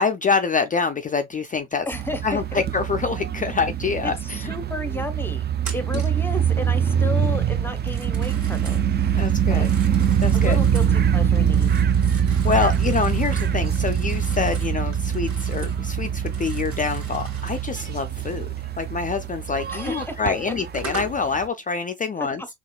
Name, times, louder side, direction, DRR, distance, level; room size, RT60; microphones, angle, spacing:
voice 1, 0.0-1.9 2.2-4.5 5.7-5.8 9.1-9.7 10.2-10.6 12.1-18.5 18.8-22.4, left 5 dB, 30° left, 0.4 m, -26 dB
voice 2, 1.9-2.6 4.0-9.7 10.3-12.2 19.7-20.6 22.2-22.5, left 1 dB, 5° left, 0.8 m, -33 dB
sound 1, 1.9-21.5, right 8 dB, 35° right, 0.4 m, -23 dB
Telephone, 5.6-6.2 7.7-8.9 9.4-11.0 11.4-15.8 16.1-17.7 19.8-19.9 20.5-21.2, right 3 dB, 65° right, 2.2 m, -41 dB
4.0 x 2.9 x 2.3 m
cardioid pair, 90°, 30 cm